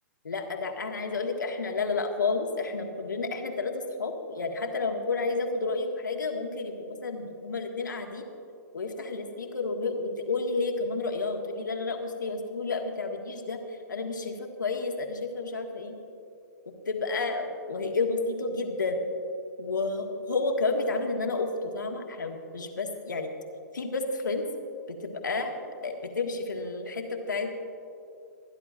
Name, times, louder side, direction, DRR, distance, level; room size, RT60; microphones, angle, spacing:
voice 1, 0.2-8.3 8.7-13.6 13.9-16.0 16.9-19.1 19.6-23.3 23.7-24.4 24.9-25.5 25.8-27.5, left 3 dB, 85° left, 3 dB, 1.5 m, -31 dB
25.0 x 10.5 x 2.5 m, 2.5 s
hypercardioid pair, 120°, 10 cm